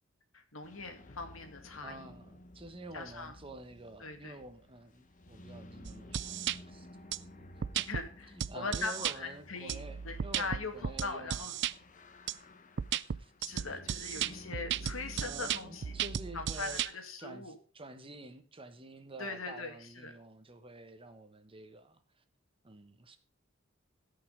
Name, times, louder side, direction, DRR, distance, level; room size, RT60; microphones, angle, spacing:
voice 1, 0.3-2.2 2.9-3.3 4.0-4.4 7.9-11.5 13.4-15.8 16.3-17.6 19.2-20.1, left 3 dB, 85° left, 2.1 m, -41 dB
sound 1, 0.6-16.8, left 1 dB, 40° left, 1.0 m, -54 dB
voice 2, 1.8-7.0 7.3-7.4 7.7-7.9 8.5-11.5 12.9-13.3 15.2-16.8 17.2-22.2 22.6-23.2, right 2 dB, 25° right, 1.2 m, -49 dB
sound 2, 5.9-6.6 7.1-7.2 7.6-8.0 8.4-9.2 9.7-11.7 12.3-12.4 12.8-16.9, right 9 dB, 60° right, 0.4 m, -35 dB
16.0 x 5.6 x 5.1 m
head